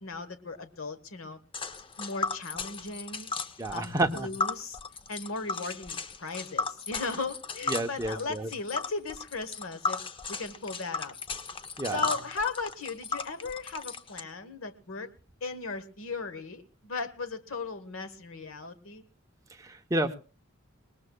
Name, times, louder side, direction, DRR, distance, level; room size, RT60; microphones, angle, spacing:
voice 1, 0.0-1.4 2.0-3.3 3.7-4.8 5.1-10.0 10.3-11.1 11.9-15.1 15.4-19.0, left 3 dB, 90° left, 11 dB, 1.1 m, -37 dB
Tick, 1.5-14.2, left 4 dB, 25° left, 0.6 m, -35 dB
voice 2, 3.6-4.3 7.7-8.5 11.8-12.0 19.6-20.1, right 1 dB, 15° right, 5 dB, 0.9 m, -30 dB
23.0 x 19.5 x 2.3 m, 0.36 s
head